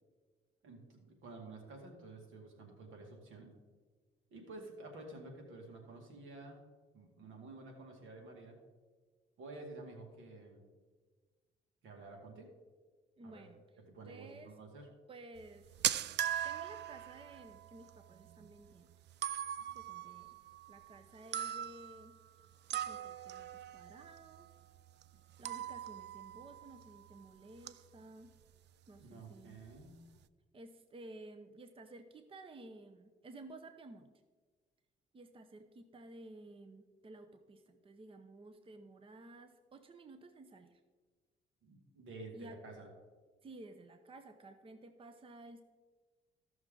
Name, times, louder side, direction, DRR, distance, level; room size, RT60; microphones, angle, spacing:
voice 1, 0.6-3.5 4.3-6.6 6.9-8.6 9.4-10.6 11.8-12.5 13.2-13.4 13.9-14.9 19.6-19.8 29.0-30.1 41.6-42.9, right 2 dB, 80° right, 2 dB, 2.1 m, -51 dB
voice 2, 13.2-13.6 14.0-14.5 15.1-15.7 16.4-18.9 19.7-20.4 20.7-22.1 22.8-24.6 25.4-28.3 28.9-29.6 30.5-34.1 35.1-40.8 42.3-42.6 43.4-45.6, right 2 dB, 25° right, 8 dB, 0.7 m, -54 dB
sound 1, 15.4-27.3 27.6-27.9 28.2-28.4 29.0-29.1 29.3-29.9, right 11 dB, 60° right, 0.4 m, -41 dB
14.5 x 6.2 x 3.8 m, 1.4 s
cardioid pair, 90°, 20 cm